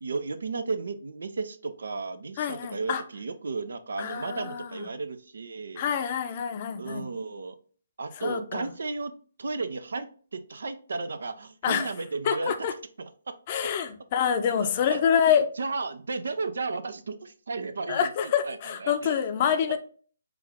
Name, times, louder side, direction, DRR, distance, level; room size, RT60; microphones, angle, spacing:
voice 1, 0.0-5.8 6.8-7.6 8.0-12.5 13.0-13.3 14.6-15.0 15.6-19.2, right 3 dB, 70° right, 11 dB, 0.5 m, -34 dB
voice 2, 2.4-3.0 4.0-4.9 5.8-7.1 8.2-8.7 11.6-11.9 12.2-12.7 13.5-15.5 17.9-19.8, left 8 dB, 40° left, 7 dB, 0.6 m, -26 dB
4.7 x 2.5 x 3.4 m, 0.43 s
figure-of-eight pair, 140°, 0 cm